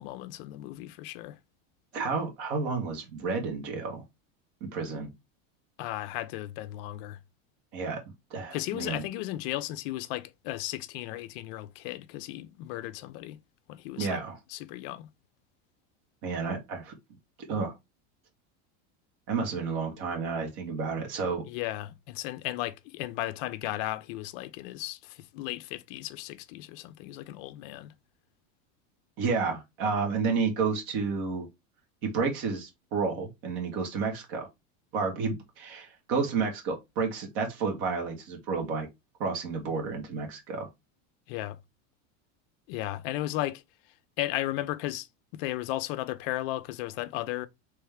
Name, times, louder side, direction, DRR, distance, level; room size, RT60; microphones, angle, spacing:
voice 1, 0.0-1.4 5.8-7.2 8.5-13.4 13.7-14.2 14.5-15.1 21.5-27.9 41.3-41.6 42.7-43.6 44.2-45.1 45.3-47.5, left 15 dB, 50° left, 0.4 m, -35 dB
voice 2, 1.9-4.0 4.6-5.1 7.7-8.0 8.3-9.0 14.0-14.4 16.2-16.9 17.5-17.7 19.3-21.4 29.2-31.5 32.0-34.5 34.9-38.9 39.2-40.7, right 5 dB, 50° right, 1.4 m, -31 dB
3.4 x 3.2 x 3.4 m
supercardioid pair, 160°, 38 cm